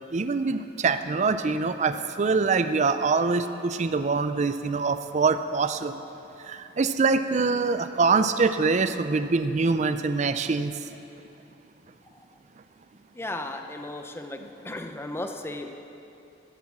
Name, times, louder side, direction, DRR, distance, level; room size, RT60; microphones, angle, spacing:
voice 1, 0.1-6.0 6.4-10.8 14.4-14.5, right 4 dB, 40° right, 10 dB, 0.5 m, -24 dB
voice 2, 13.1-15.7, left 2 dB, 15° left, 5 dB, 0.7 m, -35 dB
13.5 x 9.4 x 7.4 m, 2.9 s
head